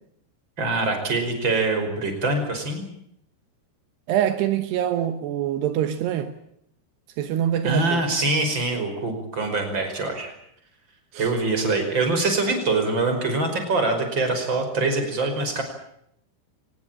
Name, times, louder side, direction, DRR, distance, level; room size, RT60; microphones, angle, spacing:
voice 1, 0.6-2.8 7.6-10.3 11.2-15.6, right 3 dB, 25° right, 5.8 m, -24 dB
voice 2, 4.1-6.3 7.2-8.0 11.1-11.3, right 10 dB, 80° right, 3.3 m, -24 dB
23.5 x 20.5 x 8.9 m
omnidirectional pair, 4.8 m